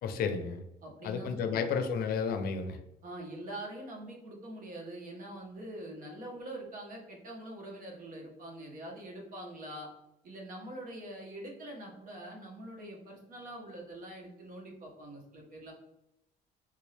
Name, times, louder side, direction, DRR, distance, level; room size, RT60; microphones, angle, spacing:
voice 1, 0.0-0.6 1.0-2.8, left 6 dB, 65° left, 8 dB, 0.5 m, -32 dB
voice 2, 0.8-1.6 3.0-9.9 10.2-15.7, right 1 dB, 55° right, 0 dB, 1.2 m, -44 dB
3.5 x 2.6 x 3.3 m, 0.86 s
cardioid pair, 110°, 17 cm